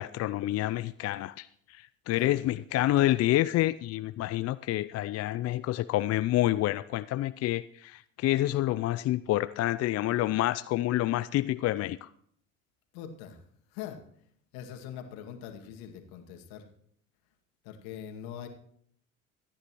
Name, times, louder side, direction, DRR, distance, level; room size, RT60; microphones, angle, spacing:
voice 1, 0.0-12.1, left 15 dB, 40° left, 14 dB, 0.5 m, -28 dB
voice 2, 12.9-13.4 13.7-14.0 14.5-16.7 17.6-18.5, left 9 dB, 65° left, 4 dB, 2.3 m, -42 dB
26.5 x 10.0 x 3.1 m, 0.65 s
hypercardioid pair, 65°, 40 cm